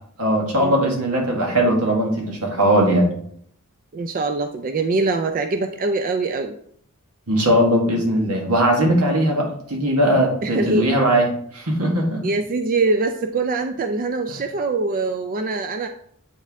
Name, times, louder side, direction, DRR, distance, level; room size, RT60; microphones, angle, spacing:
voice 1, 0.2-3.1 7.3-11.3 11.5-12.2, right 1 dB, 80° right, 0 dB, 1.7 m, -19 dB
voice 2, 3.9-6.6 10.4-10.9 12.2-15.9, right 3 dB, 40° right, 7 dB, 0.4 m, -23 dB
8.0 x 4.3 x 3.5 m, 0.66 s
head